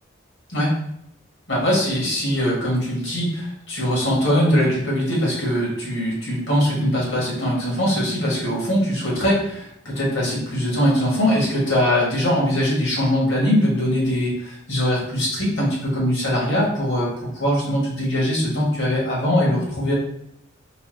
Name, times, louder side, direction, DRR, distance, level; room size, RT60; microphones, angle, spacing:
voice 1, 1.5-19.9, equal, 70° left, -5 dB, 1.6 m, -21 dB
4.0 x 2.4 x 3.8 m, 0.72 s
head